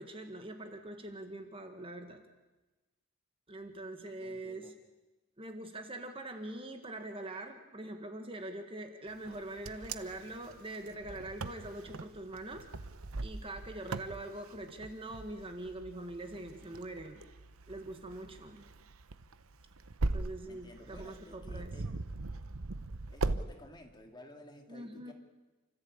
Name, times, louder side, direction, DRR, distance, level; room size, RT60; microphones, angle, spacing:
voice 1, 0.0-2.2 3.5-4.7 5.4-12.7 13.2-17.2 17.7-18.7 20.1-21.7 24.7-25.1, right 1 dB, 25° right, 6 dB, 1.7 m, -43 dB
voice 2, 4.0-4.7 20.5-22.0 23.1-25.1, left 1 dB, 20° left, 4 dB, 2.4 m, -54 dB
Wind, 9.2-23.4, right 3 dB, 70° right, 0.9 m, -40 dB
29.0 x 14.5 x 8.7 m, 1.2 s
head